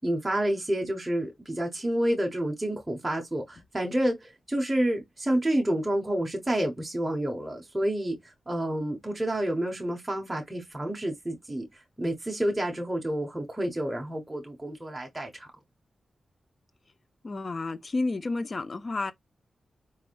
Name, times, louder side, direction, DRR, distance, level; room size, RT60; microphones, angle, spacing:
voice 1, 0.0-11.6 12.0-15.5, right 1 dB, 10° right, 1.0 m, -29 dB
voice 2, 17.2-19.1, left 3 dB, 40° left, 0.5 m, -31 dB
4.4 x 3.5 x 2.4 m
wide cardioid pair, 100°, 0 cm